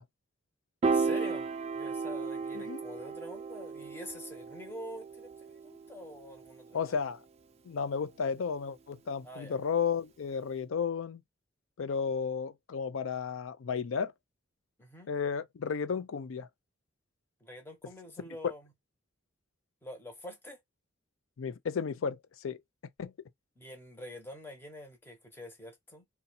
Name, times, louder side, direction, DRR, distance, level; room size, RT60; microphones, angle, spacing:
voice 1, 0.8-7.0 9.2-9.6 14.8-15.1 17.4-18.7 19.8-20.6 23.6-26.1, left 1 dB, 10° left, 0.8 m, -46 dB
Piano, 0.8-7.2, right 4 dB, 30° right, 0.3 m, -35 dB
voice 2, 6.7-7.2 7.6-11.2 11.8-14.1 15.1-16.5 21.4-22.6 23.0-23.1, left 6 dB, 85° left, 0.4 m, -33 dB
2.6 x 2.2 x 4.0 m
head